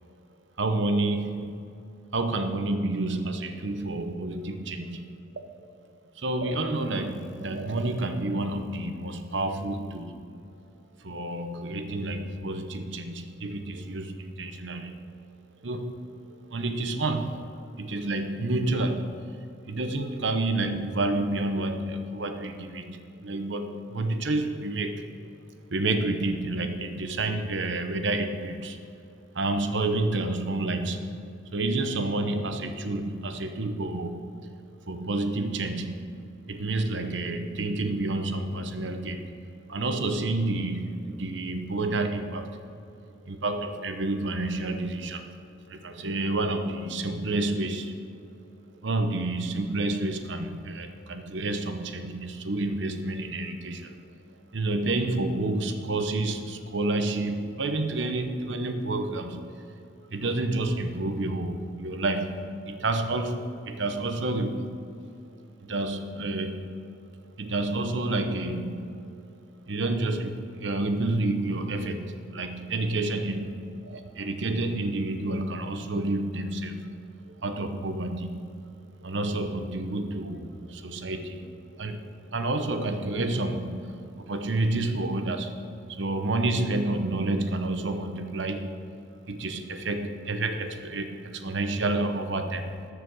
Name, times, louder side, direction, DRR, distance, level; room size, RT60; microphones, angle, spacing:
voice 1, 0.6-1.6 2.1-5.0 6.2-10.2 11.0-15.0 15.6-16.0 16.5-17.5 17.8-19.2 19.7-25.1 25.7-28.8 29.3-31.2 31.5-34.2 34.9-36.0 36.5-39.4 39.7-42.6 43.3-45.2 45.7-47.9 48.8-53.9 54.5-59.7 60.1-64.8 65.7-66.7 67.4-68.9 69.7-76.9 77.4-78.4 79.0-82.0 82.3-83.9 84.2-85.6 85.9-88.8 89.3-92.7, right 2 dB, 70° right, 7 dB, 0.9 m, -29 dB
13.5 x 5.0 x 6.3 m, 2.5 s
head